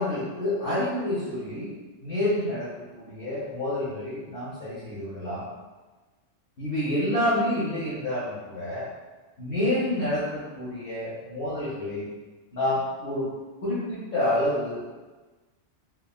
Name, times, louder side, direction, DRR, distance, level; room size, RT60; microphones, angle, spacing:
voice 1, 0.0-1.7 2.0-5.4 6.6-8.9 9.4-12.1 12.5-13.3 13.6-14.8, left 1 dB, 55° left, -10 dB, 0.8 m, -28 dB
3.5 x 2.1 x 2.3 m, 1.3 s
omnidirectional pair, 1.2 m